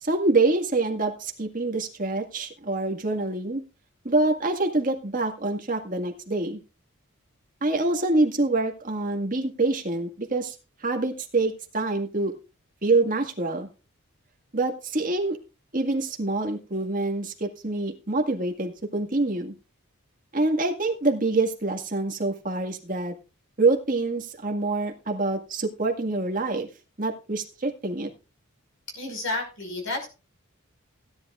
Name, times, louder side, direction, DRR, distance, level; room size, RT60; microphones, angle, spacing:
voice 1, 0.0-3.6 4.0-6.6 7.6-10.6 10.8-12.3 12.8-13.7 14.5-15.4 15.7-19.5 20.3-23.1 23.6-26.7 27.0-28.1, right 2 dB, 40° right, 3 dB, 1.9 m, -26 dB
voice 2, 28.9-30.1, left 2 dB, 65° left, 3 dB, 5.4 m, -31 dB
16.5 x 10.5 x 2.5 m, 0.31 s
head